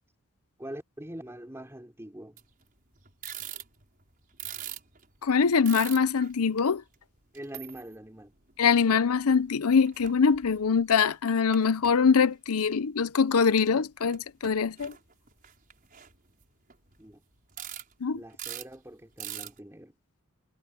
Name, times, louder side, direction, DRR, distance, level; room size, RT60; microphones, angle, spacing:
voice 1, 0.6-2.4 7.3-8.3 17.0-17.2 18.1-19.9, right 1 dB, 10° right, 4.1 m, -43 dB
sound 1, 2.4-2.6 3.0-4.0 4.3-6.4 6.9-7.0 7.3-7.9 8.4-9.2 9.5-9.6 9.8-10.7 11.0-11.9 12.6-12.7 13.4-13.7 14.0-14.2 14.4-17.0 17.5-17.9 18.2-18.7 19.2-19.6, right 11 dB, 40° right, 5.8 m, -41 dB
voice 2, 5.2-6.8 8.6-14.9 18.0-18.2, left 6 dB, 80° left, 0.6 m, -23 dB
head